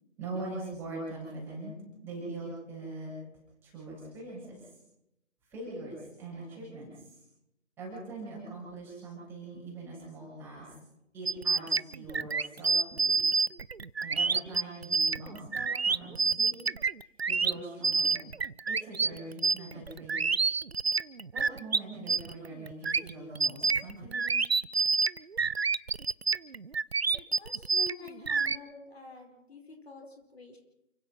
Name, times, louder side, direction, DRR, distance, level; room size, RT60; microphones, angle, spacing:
voice 1, 0.2-1.7 2.0-3.1 3.6-4.7 5.5-7.2 7.8-10.7 11.1-13.2 14.0-16.5 17.3-18.2 18.7-20.2 21.3-24.3, right 2 dB, 5° right, -5 dB, 7.5 m, -42 dB
sound 1, 11.3-21.8 22.1-28.6, right 5 dB, 55° right, 0.7 m, -28 dB
voice 2, 27.1-30.6, left 2 dB, 55° left, 2 dB, 4.7 m, -47 dB
29.0 x 16.5 x 6.0 m, 0.87 s
figure-of-eight pair, 155°, 38 cm